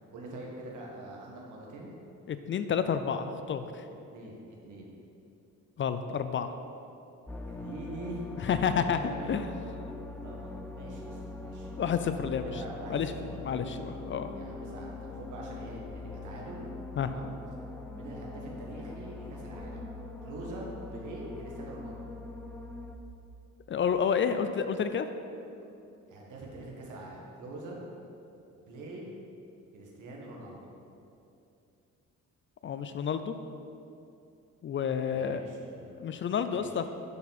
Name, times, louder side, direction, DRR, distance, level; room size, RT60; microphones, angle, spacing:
voice 1, 0.1-2.0 4.1-4.9 7.5-9.4 10.2-11.7 12.4-13.0 13.3-13.8 14.3-16.7 17.1-17.3 17.9-19.9 20.2-22.1 26.1-27.8 28.7-29.1 29.7-30.7 35.0-36.0 36.5-36.8, right 1 dB, 80° right, -2 dB, 1.7 m, -44 dB
voice 2, 2.3-3.8 5.8-6.5 8.4-9.0 9.3-9.5 11.8-12.5 12.9-14.3 17.0-17.1 23.7-25.1 32.6-33.3 34.6-35.4 36.0-36.9, left 7 dB, 40° left, 10 dB, 0.4 m, -30 dB
sound 1, 7.3-23.0, left 2 dB, 5° left, 0.6 m, -42 dB
10.5 x 4.6 x 4.2 m, 2.7 s
cardioid pair, 90°, 30 cm